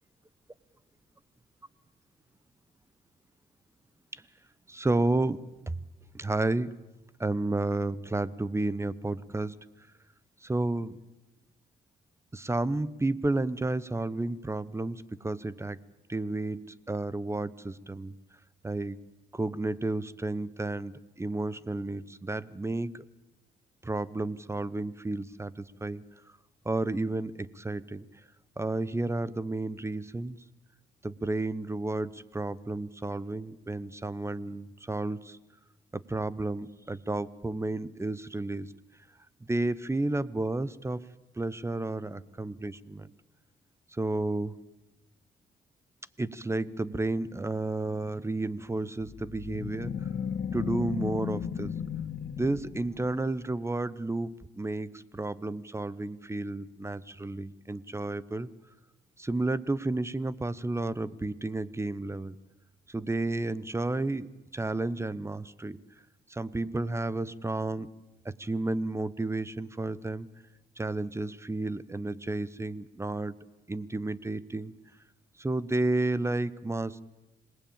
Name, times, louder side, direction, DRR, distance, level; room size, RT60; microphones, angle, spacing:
voice 1, 4.7-5.8 6.1-6.7 7.2-9.6 10.4-11.0 12.3-15.8 16.1-18.1 18.6-19.0 19.3-23.0 23.8-26.0 26.6-28.0 28.6-30.4 31.0-35.4 35.9-38.7 39.5-41.0 41.4-43.1 43.9-44.6 46.2-49.9 50.5-51.7 52.4-58.5 59.2-62.4 62.9-65.8 66.3-67.9 68.2-70.3 70.8-73.3 73.7-74.7 75.4-77.0, right 2 dB, 15° right, 19 dB, 0.9 m, -32 dB
sound 1, 49.0-53.4, left 7 dB, 55° left, 2.1 m, -35 dB
26.0 x 19.0 x 8.8 m, 1.0 s
cardioid pair, 90°, 20 cm